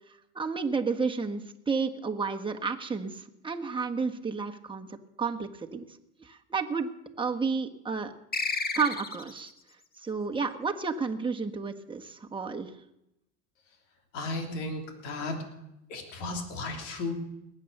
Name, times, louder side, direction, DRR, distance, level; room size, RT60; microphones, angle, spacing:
voice 1, 0.3-5.8 6.2-6.9 7.2-8.1 8.7-9.5 10.0-12.7, right 5 dB, 15° right, 3 dB, 1.4 m, -31 dB
sound 1, 8.3-9.5, left 4 dB, 25° left, 1.5 m, -32 dB
voice 2, 14.1-15.4 15.9-17.2, left 2 dB, 80° left, 4 dB, 3.1 m, -34 dB
20.0 x 8.7 x 6.7 m, 0.84 s
supercardioid pair, 90°, 36 cm